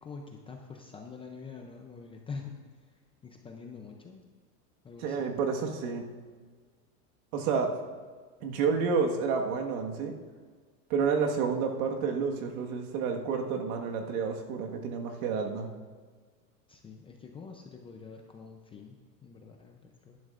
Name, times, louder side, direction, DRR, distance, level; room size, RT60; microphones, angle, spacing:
voice 1, 0.0-2.6 2.9-4.2 4.8-5.3 16.7-20.2, left 5 dB, 10° left, 2 dB, 0.5 m, -46 dB
voice 2, 5.0-6.1 7.3-7.7 8.4-10.2 10.9-15.7, right 5 dB, 60° right, 2 dB, 1.7 m, -30 dB
16.5 x 11.0 x 2.5 m, 1.5 s
supercardioid pair, 135°, 47 cm